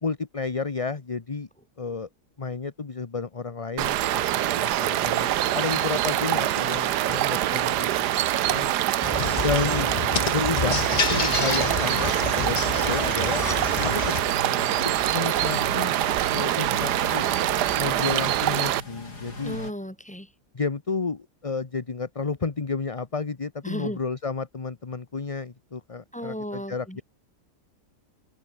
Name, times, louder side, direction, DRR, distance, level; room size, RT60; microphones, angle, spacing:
voice 1, 0.0-1.5 1.8-2.1 2.4-8.1 8.4-8.7 9.4-9.9 10.3-10.8 11.1-13.4 13.8-14.0 15.1-15.9 16.3-17.2 17.8-19.6 20.5-27.0, left 4 dB, 25° left, 1.0 m, -31 dB
sound 1, 3.8-18.8, right 13 dB, 85° right, 1.3 m, -25 dB
sound 2, 9.0-14.2, left 6 dB, 45° left, 0.5 m, -29 dB
sound 3, 11.0-19.7, left 2 dB, 85° left, 6.7 m, -38 dB
voice 2, 19.4-20.3 23.6-24.0 26.1-27.0, equal, 5° left, 4.9 m, -34 dB
omnidirectional pair, 1.7 m